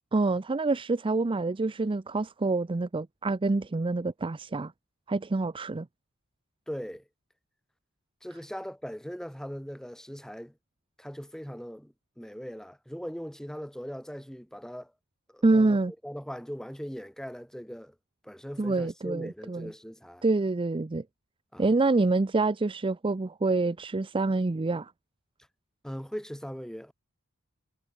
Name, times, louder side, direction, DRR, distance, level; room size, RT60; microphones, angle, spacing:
voice 1, 0.1-4.7 5.1-5.9 15.4-15.9 18.6-19.7 20.2-21.0 21.6-24.9, right 3 dB, 25° right, 0.5 m, -26 dB
voice 2, 6.7-7.0 8.2-10.5 11.0-14.9 15.3-15.8 16.0-17.9 18.2-20.3 21.5-21.7 25.8-26.9, equal, 5° left, 4.1 m, -40 dB
head